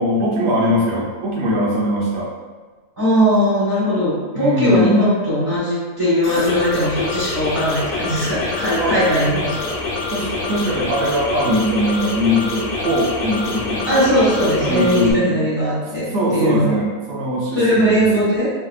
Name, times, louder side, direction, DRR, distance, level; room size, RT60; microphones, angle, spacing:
voice 1, 0.0-2.3 4.3-5.0 8.8-9.0 10.1-14.1 14.6-15.4 16.1-18.2, equal, 90° right, -4 dB, 1.2 m, -20 dB
voice 2, 3.0-9.7 13.9-16.8 17.5-18.5, equal, 15° right, -13 dB, 1.2 m, -19 dB
sound 1, 6.2-15.1, left 3 dB, 75° left, 1.0 m, -26 dB
3.2 x 2.7 x 2.3 m, 1.4 s
omnidirectional pair, 1.3 m